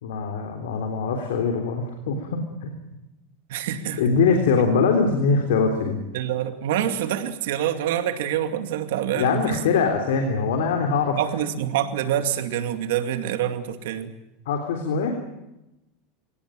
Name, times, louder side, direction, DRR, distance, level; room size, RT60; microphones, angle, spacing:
voice 1, 0.0-2.7 4.0-6.0 9.2-11.2 14.5-15.2, left 5 dB, 90° left, 4 dB, 3.5 m, -22 dB
voice 2, 3.5-4.0 6.1-9.6 11.1-14.1, right 10 dB, 80° right, 8 dB, 2.4 m, -26 dB
23.5 x 18.0 x 9.2 m, 0.93 s
supercardioid pair, 135°, 0 cm